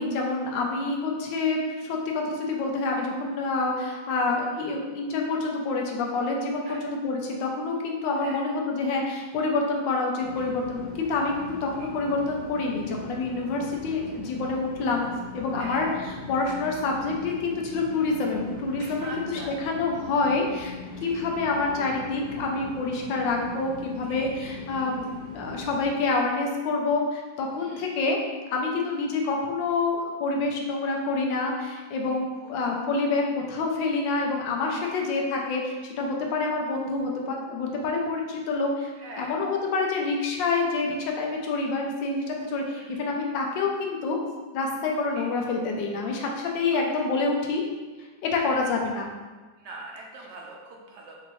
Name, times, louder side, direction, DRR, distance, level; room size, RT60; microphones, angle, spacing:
voice 1, 0.0-15.1 15.3-20.7 21.0-28.2 28.5-44.2 44.5-47.6 48.2-49.1, left 3 dB, 75° left, 0 dB, 1.3 m, -27 dB
sound 1, 10.2-25.9, left 2 dB, 50° left, 1.7 m, -40 dB
voice 2, 19.0-19.6 21.1-21.2 24.1-24.6 27.6-27.9 32.6-32.8 34.8-34.9 39.0-39.3 42.6-43.0 45.1-45.2 48.3-48.5 49.6-51.2, right 2 dB, 70° right, -1 dB, 1.0 m, -42 dB
5.0 x 2.7 x 3.0 m, 1.3 s
omnidirectional pair, 2.1 m